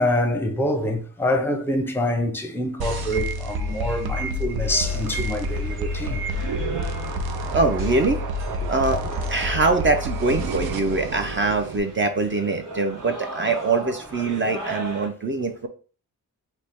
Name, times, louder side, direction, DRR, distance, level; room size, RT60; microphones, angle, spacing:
voice 1, 0.0-6.2, left 1 dB, 5° left, 0.6 m, -25 dB
sound 1, 2.8-11.8, equal, 75° right, 0.6 m, -28 dB
sound 2, 4.6-15.1, right 1 dB, 60° right, 2.0 m, -39 dB
voice 2, 7.5-8.2 8.7-9.0 9.3-15.7, right 3 dB, 30° right, 0.5 m, -23 dB
3.3 x 2.1 x 4.3 m
cardioid pair, 80°, 37 cm